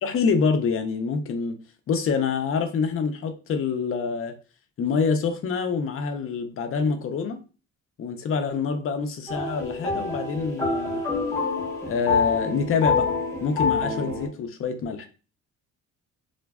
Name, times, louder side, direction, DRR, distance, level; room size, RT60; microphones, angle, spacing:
voice 1, 0.0-1.6 1.9-4.3 4.8-7.4 8.0-11.0 11.8-13.1 13.4-15.1, left 5 dB, 45° left, 7 dB, 0.5 m, -26 dB
sound 1, 9.3-14.3, left 4 dB, 10° left, 0.9 m, -26 dB
2.5 x 2.2 x 2.2 m, 0.34 s
cardioid pair, 90°, 30 cm